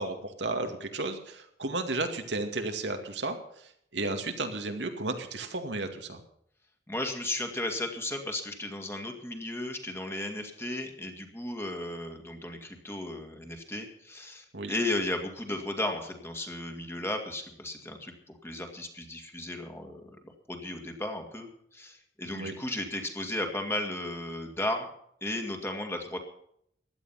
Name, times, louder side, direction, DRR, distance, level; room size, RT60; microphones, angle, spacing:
voice 1, 0.0-3.4 3.9-6.2 14.5-14.7 22.3-22.5, right 2 dB, 80° right, 5 dB, 2.2 m, -33 dB
voice 2, 6.9-20.1 20.5-24.9 25.2-26.2, left 1 dB, 15° left, 3 dB, 2.3 m, -35 dB
16.0 x 11.0 x 5.8 m, 0.69 s
head